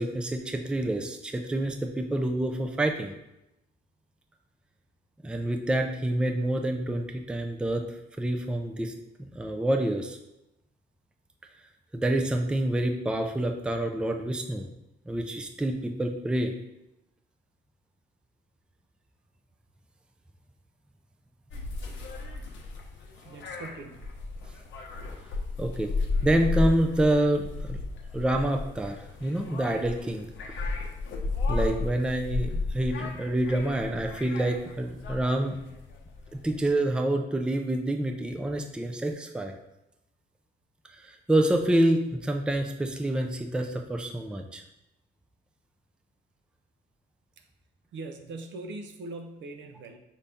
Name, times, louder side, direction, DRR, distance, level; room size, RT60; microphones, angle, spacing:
voice 1, 0.0-3.1 5.2-7.8 8.2-8.9 9.2-10.2 11.9-14.7 15.1-16.5 25.6-25.9 26.2-27.8 28.1-30.3 31.5-35.6 36.3-39.5 40.9-44.6, right 1 dB, 5° right, 4 dB, 0.4 m, -27 dB
sound 1, 21.5-36.7, left 3 dB, 70° left, 0.8 m, -34 dB
voice 2, 23.2-24.0 47.9-50.0, right 2 dB, 70° right, 5 dB, 0.6 m, -41 dB
5.2 x 2.7 x 3.4 m, 0.87 s
cardioid pair, 90°, 20 cm